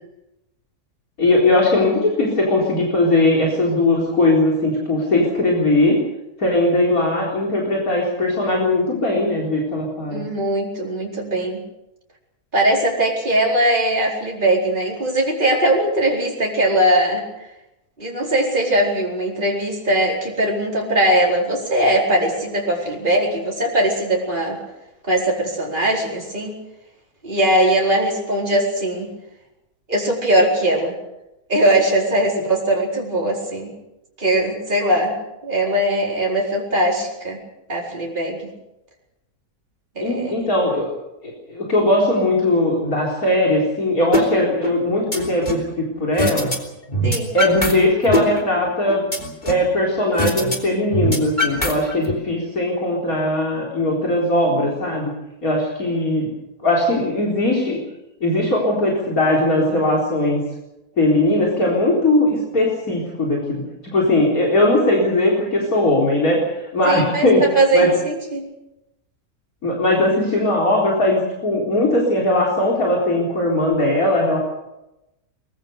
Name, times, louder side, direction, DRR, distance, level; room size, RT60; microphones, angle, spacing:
voice 1, 1.2-6.0 6.4-10.2 40.0-40.9 41.2-46.5 47.3-49.0 49.4-55.1 55.4-56.3 56.6-57.8 58.2-60.4 61.0-67.5 67.7-67.9 69.6-74.4, left 1 dB, 60° left, -1 dB, 4.5 m, -19 dB
voice 2, 10.1-11.6 12.5-17.2 18.0-24.6 25.1-26.5 27.2-29.1 29.9-30.9 31.5-33.7 34.2-35.2 35.4-37.4 37.7-38.4 40.0-40.5 47.0-47.3 66.8-68.4, right 1 dB, 30° right, -2 dB, 4.7 m, -20 dB
sound 1, 44.1-44.3 44.6-45.7 46.2-46.6 46.8-47.7 48.0-49.7 50.2-50.6 50.8-52.1, equal, 30° left, 3.5 m, -22 dB
23.0 x 22.5 x 6.7 m, 0.92 s
omnidirectional pair, 1.7 m